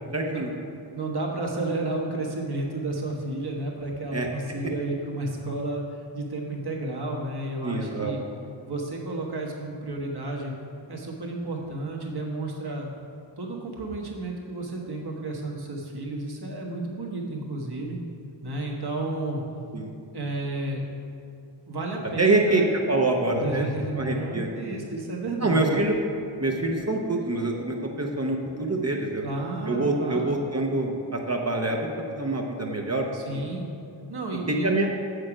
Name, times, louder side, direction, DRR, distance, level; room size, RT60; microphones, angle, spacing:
voice 1, 0.1-0.5 4.1-4.3 7.6-8.1 19.7-19.9 22.2-23.7 24.0-24.8 25.4-26.0 26.4-29.2 29.7-33.0 33.3-33.4 34.5-34.9, right 2 dB, 35° right, 1 dB, 0.8 m, -25 dB
voice 2, 0.9-8.2 8.7-10.5 10.9-12.9 13.4-18.0 18.4-19.4 20.1-20.8 21.7-22.6 23.4-25.8 29.2-30.4 33.1-33.7 34.1-34.7, right 2 dB, 55° right, -2 dB, 1.4 m, -32 dB
7.5 x 6.6 x 4.9 m, 2.6 s
wide cardioid pair, 85°, 46 cm